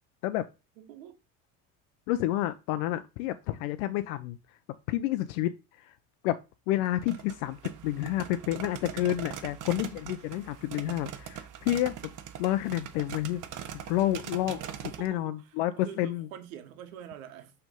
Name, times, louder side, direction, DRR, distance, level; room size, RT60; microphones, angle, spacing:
voice 1, 0.8-1.2 14.5-17.5, right 9 dB, 90° right, 1.3 m, -46 dB
voice 2, 2.1-4.4 4.9-6.0 6.2-6.4 6.7-7.6 7.8-12.1 12.4-13.4 13.9-14.6 15.0-16.3, left 14 dB, 80° left, 0.7 m, -29 dB
sound 1, 6.9-15.1, right 9 dB, 50° right, 1.2 m, -41 dB
6.2 x 3.5 x 5.3 m
supercardioid pair, 80°, 39 cm